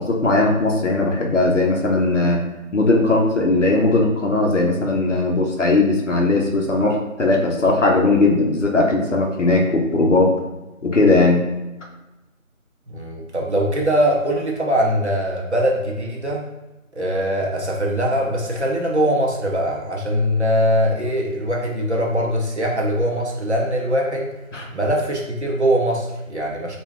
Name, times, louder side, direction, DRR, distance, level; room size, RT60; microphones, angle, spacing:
voice 1, 0.0-2.4 2.7-10.3 10.8-11.4 24.5-24.7, left 2 dB, 60° left, 0 dB, 0.6 m, -18 dB
voice 2, 12.9-16.4 17.0-24.3 24.7-26.8, equal, 55° right, -2 dB, 0.6 m, -21 dB
2.3 x 2.2 x 3.2 m, 1.0 s
figure-of-eight pair, 175°, 42 cm